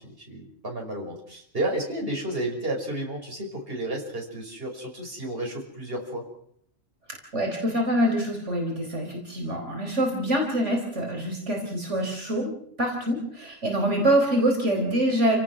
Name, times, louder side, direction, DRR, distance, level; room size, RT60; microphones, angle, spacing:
voice 1, 0.0-6.3, right 1 dB, 50° right, 1 dB, 5.8 m, -32 dB
voice 2, 7.1-12.5 12.8-15.4, right 1 dB, 75° right, 1 dB, 4.6 m, -25 dB
29.0 x 17.5 x 6.1 m, 0.68 s
omnidirectional pair, 1.2 m